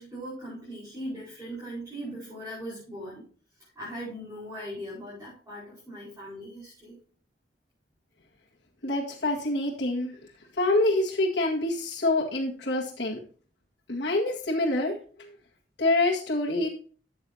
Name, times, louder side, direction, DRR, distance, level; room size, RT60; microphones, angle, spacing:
voice 1, 0.0-3.2 3.7-6.9, equal, 20° right, -9 dB, 5.1 m, -39 dB
voice 2, 8.8-10.2 10.6-13.2 13.9-15.3 15.8-16.7, left 2 dB, 75° left, -4 dB, 1.9 m, -26 dB
13.0 x 8.0 x 2.8 m, 0.41 s
head